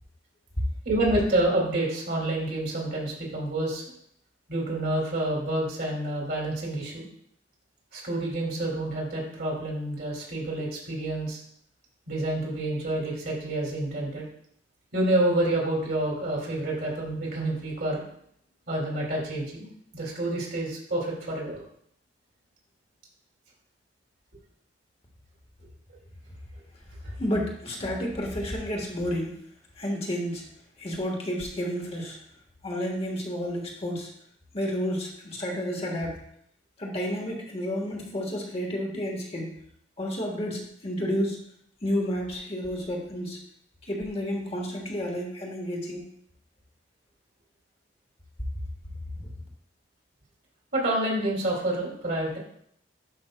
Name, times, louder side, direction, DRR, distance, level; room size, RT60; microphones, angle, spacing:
voice 1, 0.8-3.8 4.5-7.0 7.9-11.4 12.1-14.2 14.9-18.0 18.7-19.7 19.9-21.6 50.7-52.4, right 1 dB, 60° right, -3 dB, 2.5 m, -28 dB
voice 2, 27.2-29.4 29.8-30.4 30.8-32.2 32.6-34.1 34.5-36.2 36.8-39.5 40.0-41.4 41.8-43.4 43.8-46.1 49.2-49.3, equal, 35° left, -1 dB, 1.3 m, -31 dB
11.0 x 5.1 x 2.2 m, 0.68 s
head